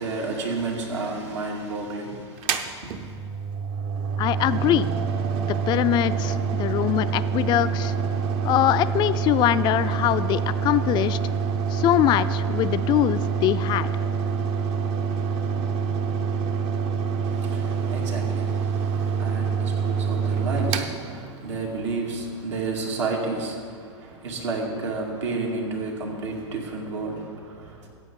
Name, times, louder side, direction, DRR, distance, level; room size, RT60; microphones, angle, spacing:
voice 1, 0.0-2.3 2.8-2.9 17.4-18.8 19.2-23.7 24.0-27.7, right 3 dB, 75° right, -1 dB, 2.4 m, -31 dB
Mechanical fan, 2.4-21.8, right 6 dB, 40° right, 0.7 m, -26 dB
voice 2, 4.2-4.9 5.5-7.9 8.4-11.2 11.7-13.9, left 13 dB, 30° left, 14 dB, 0.4 m, -23 dB
15.0 x 8.5 x 3.8 m, 2.1 s
hypercardioid pair, 115°, 15 cm